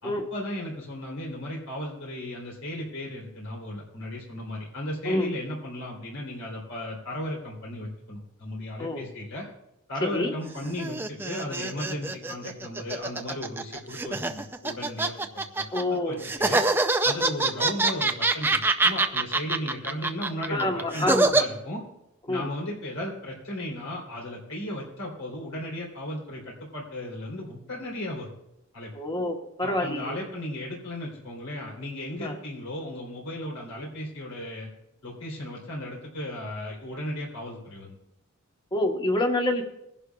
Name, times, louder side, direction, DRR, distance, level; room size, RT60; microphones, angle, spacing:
voice 1, 0.0-9.4 9.9-15.1 15.6-16.6 17.0-21.8 22.3-28.3 28.7-28.9 29.6-34.7 35.0-38.0, left 1 dB, 80° left, -3 dB, 3.4 m, -35 dB
voice 2, 10.0-10.3 15.7-16.2 20.5-21.4 22.3-22.5 28.9-30.2 32.2-32.3 38.7-39.6, left 1 dB, 20° left, 4 dB, 1.2 m, -27 dB
sound 1, 10.4-15.8 16.2-21.4, right 3 dB, 10° right, 0.4 m, -25 dB
21.5 x 11.0 x 2.4 m, 0.86 s
head